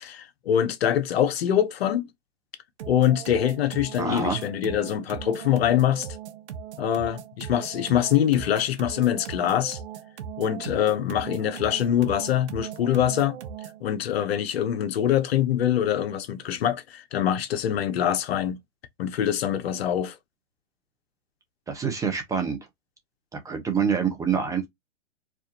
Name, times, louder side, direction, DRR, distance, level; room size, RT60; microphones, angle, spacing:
voice 1, 0.0-2.1 2.9-6.1 6.8-9.8 10.4-13.4 13.8-18.6 19.0-20.2, left 10 dB, 60° left, 0.9 m, -24 dB
sound 1, 2.8-13.9, right 8 dB, 65° right, 1.0 m, -39 dB
voice 2, 4.0-4.4 21.7-22.6 23.3-24.7, right 6 dB, 10° right, 0.6 m, -26 dB
4.8 x 2.5 x 2.7 m
hypercardioid pair, 135°, 35 cm